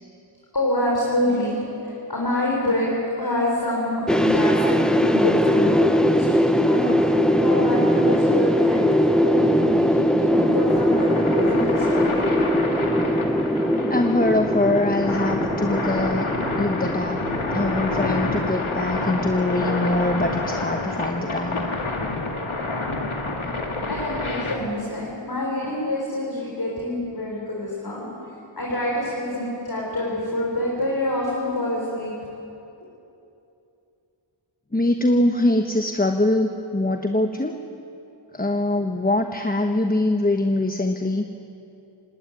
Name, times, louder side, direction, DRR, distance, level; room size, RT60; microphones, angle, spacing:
voice 1, 0.5-12.3 23.9-32.1, left 1 dB, 50° left, -3 dB, 4.6 m, -27 dB
sound 1, 4.1-20.2, equal, ahead, 1.0 m, -21 dB
sound 2, 6.2-24.6, left 2 dB, 80° left, 2.4 m, -29 dB
voice 2, 13.9-16.3 16.6-17.2 17.5-21.7 34.7-37.6 38.3-41.2, left 1 dB, 20° left, 4 dB, 1.1 m, -23 dB
19.5 x 18.5 x 9.4 m, 2.8 s
wide cardioid pair, 60°, 48 cm